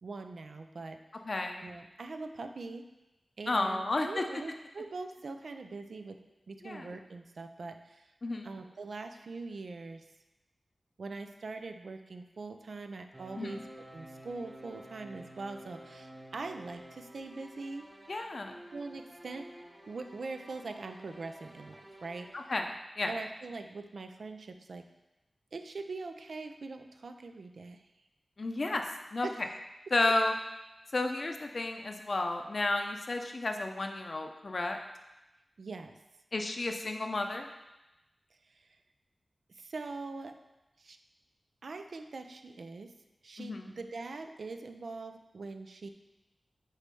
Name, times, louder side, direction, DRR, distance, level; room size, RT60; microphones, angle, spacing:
voice 1, 0.0-1.0 1.6-2.9 3.4-6.2 6.5-8.1 8.4-10.1 11.0-13.6 13.9-17.9 18.7-19.5 19.9-22.5 23.1-24.9 25.5-27.9 29.2-29.4 35.6-36.0 38.5-38.7 39.5-40.4 40.8-41.0 41.6-42.9 43.2-45.9, right 3 dB, 75° right, 7 dB, 0.4 m, -42 dB
voice 2, 1.3-1.6 3.5-4.2 6.6-6.9 8.2-8.5 13.4-13.6 18.1-18.6 22.3-23.1 28.4-28.8 29.1-29.3 29.9-30.3 30.9-34.8 36.3-37.5 43.4-43.7, left 2 dB, 55° left, 4 dB, 0.6 m, -32 dB
sound 1, 13.1-22.4, right 1 dB, 20° right, 0.6 m, -51 dB
6.5 x 3.2 x 5.3 m, 0.99 s
cardioid pair, 50°, 0 cm